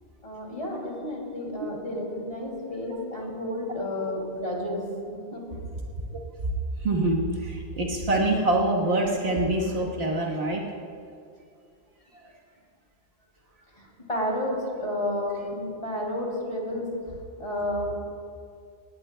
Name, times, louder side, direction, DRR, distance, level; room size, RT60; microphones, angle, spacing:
voice 1, 0.2-5.4 14.1-16.9 17.4-17.9, left 1 dB, 35° left, -2 dB, 2.8 m, -31 dB
voice 2, 6.8-10.6, right 2 dB, 75° right, -2 dB, 1.7 m, -25 dB
20.0 x 18.0 x 2.2 m, 2.3 s
omnidirectional pair, 1.1 m